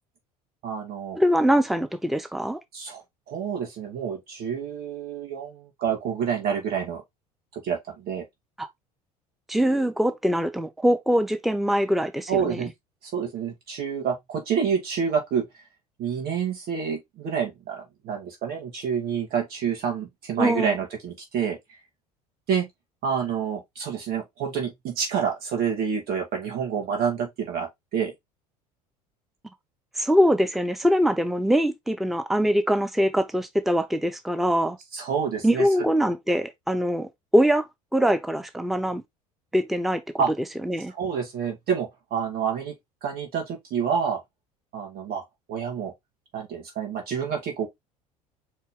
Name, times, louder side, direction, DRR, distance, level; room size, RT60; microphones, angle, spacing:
voice 1, 0.6-1.2 2.7-7.0 7.5-8.3 12.3-12.7 13.0-15.5 16.0-21.6 22.5-22.7 23.0-28.1 34.9-35.7 40.2-40.3 40.9-42.7 43.0-44.2 44.7-45.2 45.5-45.9 46.3-47.7, right 7 dB, 50° right, 2.2 m, -28 dB
voice 2, 1.2-2.6 8.6-8.7 9.5-12.6 20.4-20.7 30.0-34.8 35.4-37.6 37.9-39.0 39.5-40.0 40.7-40.9, equal, ahead, 0.7 m, -23 dB
4.4 x 3.3 x 3.5 m
figure-of-eight pair, 70°, 20 cm